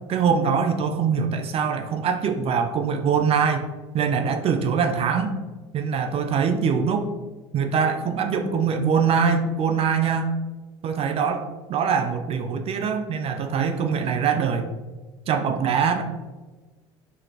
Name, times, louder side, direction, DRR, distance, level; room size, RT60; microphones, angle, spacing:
voice 1, 0.1-3.7 3.9-5.4 5.7-7.1 7.5-10.4 10.8-14.7 15.3-16.0, right 6 dB, 45° right, 6 dB, 0.4 m, -23 dB
4.1 x 2.7 x 3.3 m, 1.3 s
hypercardioid pair, 70°, 14 cm